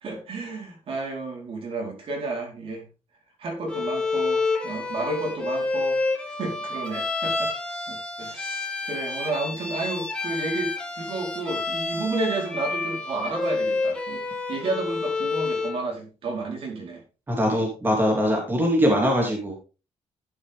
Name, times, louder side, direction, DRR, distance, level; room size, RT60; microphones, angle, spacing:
voice 1, 0.0-2.8 3.4-14.2 14.5-17.0, right 3 dB, 50° right, 1 dB, 4.3 m, -32 dB
Bowed string instrument, 3.7-15.8, left 3 dB, 10° left, 1.7 m, -29 dB
voice 2, 17.3-19.6, equal, 15° right, 0 dB, 2.7 m, -22 dB
12.0 x 7.3 x 3.7 m, 0.32 s
cardioid pair, 155°, 12 cm